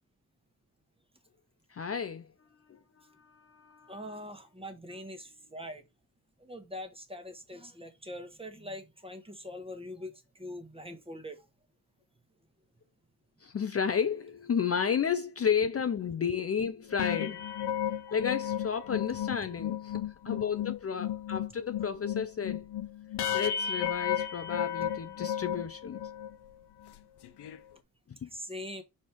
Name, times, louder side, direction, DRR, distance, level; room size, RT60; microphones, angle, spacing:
voice 1, 1.7-2.3 2.7-2.8 3.2-4.0 13.4-17.5 18.1-22.6 23.3-26.0 28.2-28.3, left 7 dB, 40° left, 0.6 m, -32 dB
voice 2, 3.9-5.8 6.4-11.4 18.1-18.2 28.2-28.8, left 1 dB, 15° right, 1.4 m, -43 dB
sound 1, 16.9-26.4 26.8-27.0 27.2-27.6, left 9 dB, 85° left, 0.8 m, -34 dB
5.2 x 4.3 x 4.5 m
cardioid pair, 90°, 39 cm